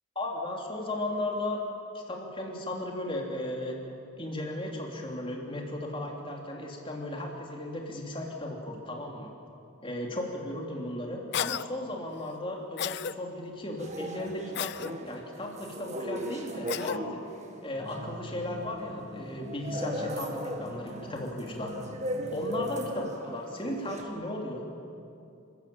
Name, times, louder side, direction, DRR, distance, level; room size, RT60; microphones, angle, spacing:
voice 1, 0.1-1.6 1.9-3.8 4.2-9.3 9.8-17.2 17.6-21.7 22.3-24.8, left 1 dB, 25° left, 0 dB, 3.3 m, -36 dB
Cough, 11.3-11.7 12.8-13.1 14.5-14.9 16.7-17.0, left 9 dB, 55° left, 0.4 m, -32 dB
sound 1, 13.8-24.0, equal, 35° right, 1.8 m, -38 dB
sound 2, 17.8-22.9, equal, ahead, 1.9 m, -45 dB
29.5 x 14.0 x 8.8 m, 2.7 s
head